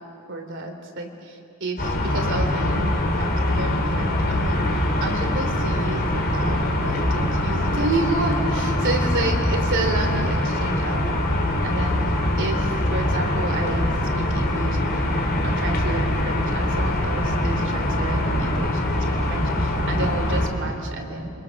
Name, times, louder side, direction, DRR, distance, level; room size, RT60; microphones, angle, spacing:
voice 1, 0.3-2.9 3.2-4.7 5.0-11.0 11.6-12.0 12.4-15.2 15.4-21.3, right 2 dB, 60° right, 4 dB, 3.1 m, -30 dB
sound 1, 1.8-20.5, left 1 dB, 45° left, 3.3 m, -23 dB
28.0 x 25.0 x 6.4 m, 2.7 s
head